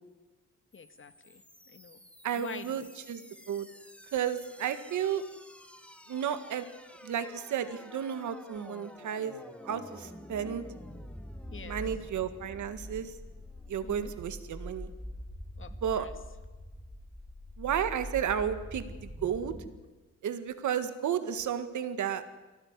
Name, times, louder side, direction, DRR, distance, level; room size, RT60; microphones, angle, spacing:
voice 1, 0.7-1.4 1.7-2.0 2.3-2.9 11.5-11.8 13.8-14.1 15.6-16.1, left 6 dB, 45° left, 9 dB, 1.9 m, -46 dB
sound 1, 0.7-19.7, equal, 5° left, 2.4 m, -46 dB
voice 2, 2.2-2.8 3.1-3.7 4.1-5.2 6.1-6.7 7.0-9.4 9.6-10.7 11.6-13.1 13.7-14.9 15.8-16.1 17.6-19.6 20.2-22.4, right 9 dB, 80° right, 10 dB, 1.8 m, -32 dB
24.5 x 17.0 x 9.7 m, 1.2 s
cardioid pair, 105°, 29 cm